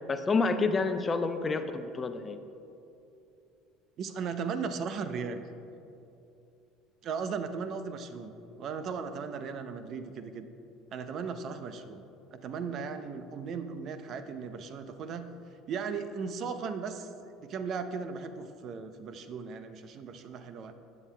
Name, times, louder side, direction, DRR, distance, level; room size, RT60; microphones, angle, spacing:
voice 1, 0.1-2.4, left 4 dB, 30° left, 9 dB, 0.6 m, -28 dB
voice 2, 4.0-5.4 7.0-8.3 8.6-10.5 10.9-15.3 15.7-20.7, right 5 dB, 50° right, 10 dB, 0.6 m, -37 dB
15.0 x 8.6 x 2.2 m, 2.7 s
hypercardioid pair, 65°, 0 cm